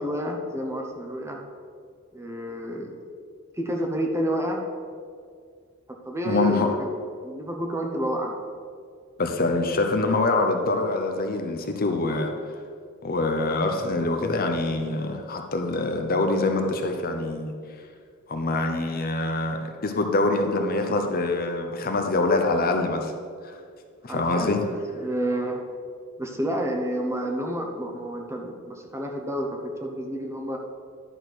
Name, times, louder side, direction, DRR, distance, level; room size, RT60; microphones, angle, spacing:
voice 1, 0.0-1.4 2.1-3.0 3.5-4.6 5.9-6.9 7.2-8.3 24.1-25.6 26.2-30.6, right 1 dB, 15° right, 1 dB, 0.9 m, -29 dB
voice 2, 6.2-6.8 9.2-12.3 13.0-17.5 18.3-23.1 23.4-23.5 24.0-24.6, left 2 dB, 45° left, 4 dB, 0.8 m, -25 dB
11.0 x 4.3 x 6.4 m, 2.1 s
head